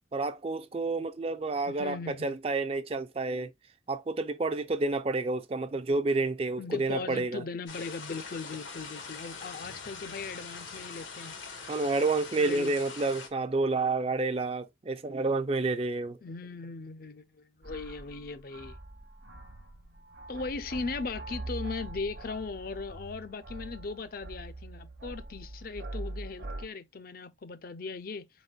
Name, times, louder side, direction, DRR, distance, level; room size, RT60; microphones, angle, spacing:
voice 1, 0.1-3.5 3.9-7.4 11.7-16.2, right 3 dB, 30° right, 0.4 m, -29 dB
voice 2, 1.7-2.4 6.6-11.3 12.4-12.7 16.2-18.8 20.3-28.3, left 4 dB, 50° left, 0.5 m, -38 dB
sound 1, 7.7-13.3, left 4 dB, 90° left, 1.5 m, -43 dB
sound 2, 17.6-26.7, right 2 dB, 60° right, 0.9 m, -42 dB
4.3 x 4.0 x 2.3 m
head